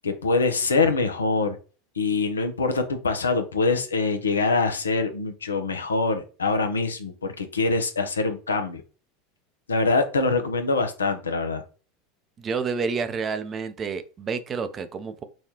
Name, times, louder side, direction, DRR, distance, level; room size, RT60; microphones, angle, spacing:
voice 1, 0.0-1.6 2.0-8.8 9.7-11.6, left 3 dB, 85° left, 0.5 m, -24 dB
voice 2, 12.4-15.2, right 5 dB, 30° right, 0.5 m, -29 dB
4.1 x 2.3 x 2.9 m
figure-of-eight pair, 80°, 0 cm